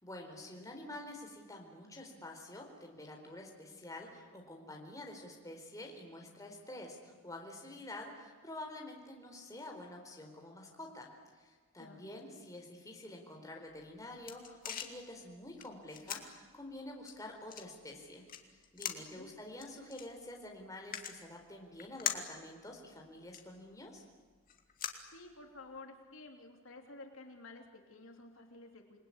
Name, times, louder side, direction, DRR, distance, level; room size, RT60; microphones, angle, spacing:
voice 1, 0.0-24.0, left 1 dB, 15° left, 1 dB, 4.3 m, -48 dB
voice 2, 11.8-12.3 19.2-19.3 25.1-29.0, left 2 dB, 75° left, 3 dB, 3.3 m, -52 dB
sound 1, 13.7-25.8, left 9 dB, 45° left, 2.3 m, -45 dB
28.0 x 20.5 x 9.9 m, 1.5 s
head